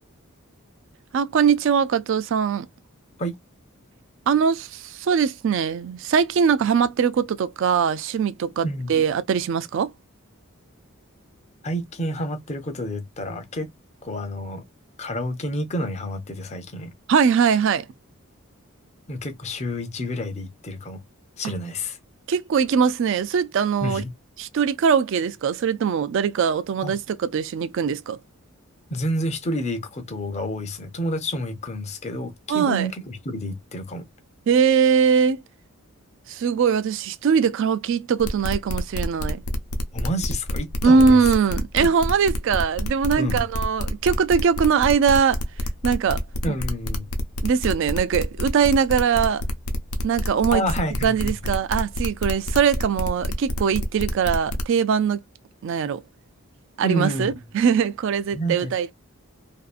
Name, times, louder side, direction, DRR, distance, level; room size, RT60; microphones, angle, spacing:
voice 1, 1.1-2.7 4.3-9.9 17.1-17.9 22.3-24.0 24.4-28.2 32.5-32.9 34.5-35.4 36.3-39.4 40.8-45.4 45.8-46.2 47.4-49.4 50.0-50.6 51.0-55.2 55.6-56.0 56.8-58.9, right 6 dB, 60° right, 0.3 m, -21 dB
voice 2, 11.6-13.7 14.0-14.6 15.0-16.9 19.1-21.0 21.4-22.0 23.8-24.1 26.8-27.0 28.9-34.1 39.9-41.2 41.8-41.9 43.2-43.4 46.4-47.1 50.5-51.5 56.8-57.4 58.3-58.7, equal, 30° left, 0.6 m, -29 dB
sound 1, 38.2-54.6, left 1 dB, 90° left, 0.6 m, -28 dB
2.6 x 2.5 x 2.3 m
head